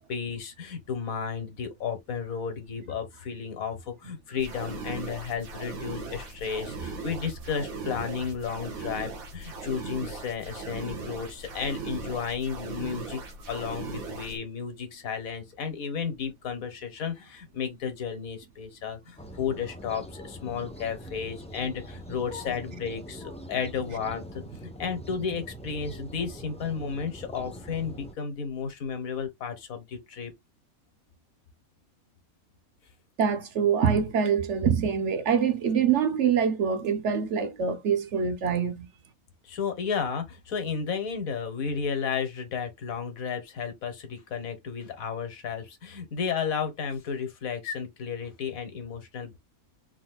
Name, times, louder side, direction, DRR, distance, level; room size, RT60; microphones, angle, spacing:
voice 1, 0.1-13.2 13.5-30.3 39.4-49.4, left 6 dB, 75° left, 1.6 m, -33 dB
sound 1, 4.4-14.4, right 3 dB, 75° right, 1.7 m, -39 dB
sound 2, 19.2-28.1, equal, 5° left, 0.5 m, -43 dB
voice 2, 33.2-38.9, right 7 dB, 60° right, 1.0 m, -25 dB
4.2 x 4.0 x 2.3 m
omnidirectional pair, 1.5 m